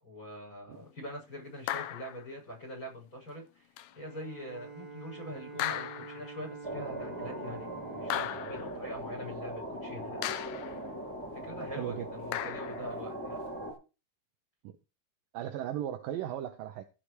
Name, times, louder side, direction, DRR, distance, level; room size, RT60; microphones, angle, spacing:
voice 1, 0.0-3.7 4.0-7.7 8.0-10.2 11.3-13.4, equal, 20° left, 7.4 m, -44 dB
sound 1, 1.7-2.2 3.8-3.9 5.6-6.3 8.1-8.8 10.2-10.8 12.3-12.9, left 12 dB, 75° left, 2.4 m, -36 dB
Bowed string instrument, 3.9-9.6, right 4 dB, 35° right, 0.5 m, -48 dB
sound 2, 6.6-13.7, right 1 dB, 5° right, 3.9 m, -40 dB
voice 2, 11.8-12.1 14.6-14.8 15.3-16.8, right 11 dB, 75° right, 2.2 m, -36 dB
15.5 x 6.7 x 4.9 m
omnidirectional pair, 4.6 m